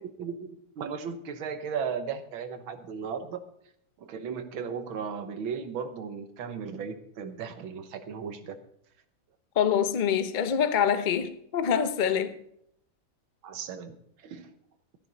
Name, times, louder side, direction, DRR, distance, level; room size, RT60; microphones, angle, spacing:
voice 1, 0.2-0.5 0.8-3.4 4.0-8.6 13.4-14.0 14.2-14.5, right 6 dB, 85° right, 1.9 m, -36 dB
voice 2, 9.6-12.4, left 8 dB, 65° left, 0.4 m, -25 dB
13.5 x 10.5 x 4.0 m
omnidirectional pair, 2.1 m